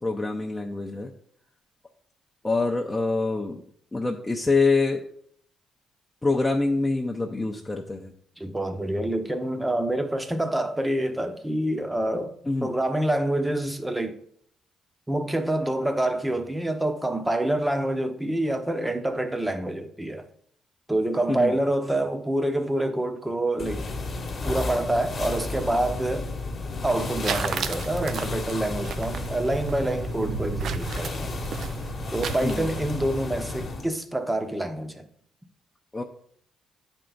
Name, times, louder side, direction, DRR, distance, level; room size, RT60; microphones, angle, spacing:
voice 1, 0.0-1.1 2.4-3.6 3.9-5.0 6.2-8.1 12.5-12.7 21.3-21.5 32.4-32.7 35.9-36.0, left 3 dB, 20° left, 0.7 m, -25 dB
voice 2, 8.4-12.3 12.6-14.2 15.1-20.3 20.9-23.8 24.4-26.3 26.8-31.3 32.1-35.1, right 1 dB, 10° right, 0.9 m, -27 dB
sound 1, 23.6-33.9, left 2 dB, 35° left, 1.2 m, -32 dB
sound 2, 26.9-32.9, right 7 dB, 65° right, 0.4 m, -34 dB
9.7 x 4.5 x 4.0 m
cardioid pair, 90°, 0 cm